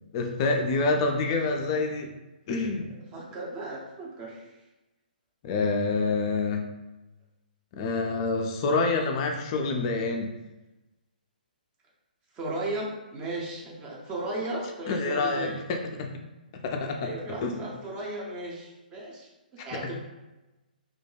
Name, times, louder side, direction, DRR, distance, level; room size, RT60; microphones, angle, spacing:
voice 1, 0.1-2.1 2.5-2.9 5.4-6.7 7.7-10.3 14.9-16.2 16.6-17.1 17.4-17.6 19.7-19.9, left 3 dB, 30° left, 3 dB, 0.3 m, -27 dB
voice 2, 3.1-4.5 12.3-15.6 17.0-19.9, right 2 dB, 20° right, -3 dB, 0.5 m, -35 dB
2.3 x 2.1 x 3.1 m, 1.1 s
figure-of-eight pair, 125°, 5 cm